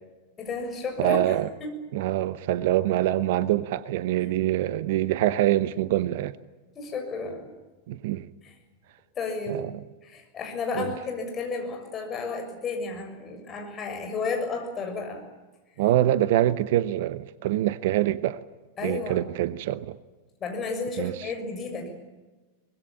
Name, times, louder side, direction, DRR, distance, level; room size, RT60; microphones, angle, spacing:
voice 1, 0.4-1.7 6.7-7.6 8.4-8.5 9.1-9.7 10.0-15.2 18.8-19.3 20.4-21.9, left 4 dB, 25° left, 6.9 m, -32 dB
voice 2, 1.0-1.5 1.9-6.3 7.9-8.3 9.5-9.7 10.8-10.9 15.8-18.4 18.8-20.0 21.0-21.1, right 13 dB, 50° right, 0.9 m, -25 dB
24.0 x 21.0 x 8.9 m
figure-of-eight pair, 90°, 0 cm